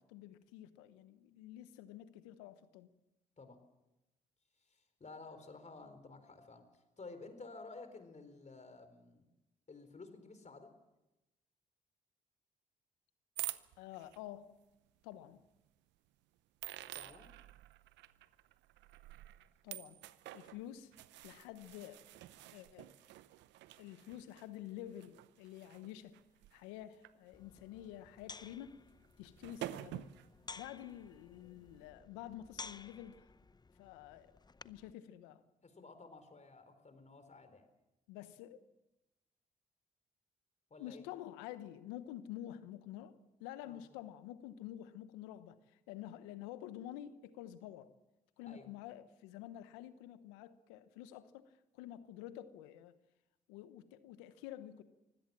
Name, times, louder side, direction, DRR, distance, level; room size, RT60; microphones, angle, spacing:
voice 1, 0.1-2.9 13.8-14.6 15.0-15.4 19.6-20.0 20.3-20.9 21.2-22.0 22.5-22.9 23.8-26.2 26.5-28.8 29.2-30.1 30.6-33.3 33.8-35.4 38.1-38.6 40.8-47.9 48.4-53.0 53.5-54.8, left 12 dB, 90° left, 1.0 m, -49 dB
voice 2, 4.7-9.2 9.7-10.7 16.9-17.3 35.6-37.6 40.7-41.0 43.7-43.8 48.5-48.7, left 3 dB, 40° left, 4.2 m, -53 dB
sound 1, 13.4-14.2 15.1-15.2 16.6-27.1 27.6-27.8 29.0-29.1 29.4-30.3, right 15 dB, 80° right, 0.7 m, -48 dB
sound 2, 27.3-34.9, left 4 dB, 25° left, 0.7 m, -54 dB
24.5 x 16.5 x 7.5 m
hypercardioid pair, 45°, 18 cm